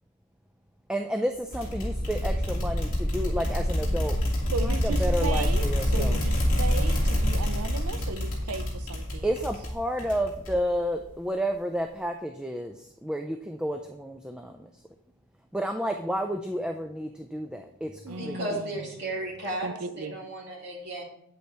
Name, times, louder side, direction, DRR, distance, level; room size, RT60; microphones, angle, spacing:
voice 1, 0.9-4.2 4.6-6.2 9.2-14.8 15.5-18.4, equal, 5° right, 5 dB, 0.3 m, -31 dB
sound 1, 1.5-10.8, equal, 40° left, 2.6 m, -26 dB
voice 2, 4.5-9.3 18.1-18.9 19.6-20.2, right 4 dB, 90° right, 11 dB, 0.6 m, -35 dB
voice 3, 18.0-19.7 20.0-21.0, right 1 dB, 50° right, -4 dB, 3.0 m, -34 dB
9.1 x 8.1 x 3.3 m, 0.73 s
head